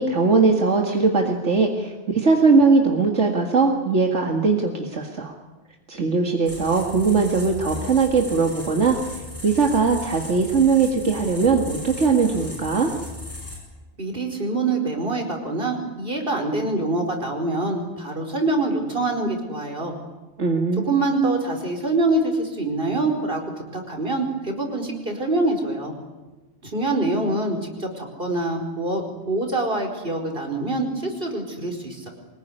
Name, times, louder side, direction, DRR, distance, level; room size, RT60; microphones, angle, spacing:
voice 1, 0.0-5.3 5.9-9.0 9.4-12.9 20.4-20.9, right 4 dB, 75° right, 1 dB, 2.3 m, -20 dB
sound 1, 6.5-13.6, left 1 dB, 10° left, 7.7 m, -36 dB
voice 2, 14.0-20.0 20.8-23.4 23.7-25.9 26.6-32.1, right 2 dB, 50° right, 3 dB, 4.9 m, -25 dB
24.5 x 21.0 x 10.0 m, 1.2 s
omnidirectional pair, 1.2 m